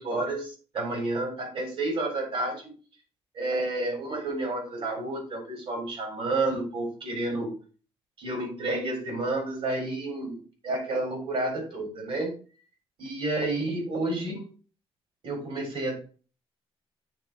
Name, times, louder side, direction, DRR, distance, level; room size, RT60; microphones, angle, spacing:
voice 1, 0.0-2.7 3.3-7.5 8.2-12.4 13.0-14.5 15.2-15.9, right 2 dB, 65° right, 2 dB, 4.2 m, -30 dB
8.8 x 3.8 x 4.2 m, 0.37 s
cardioid pair, 110°, 10 cm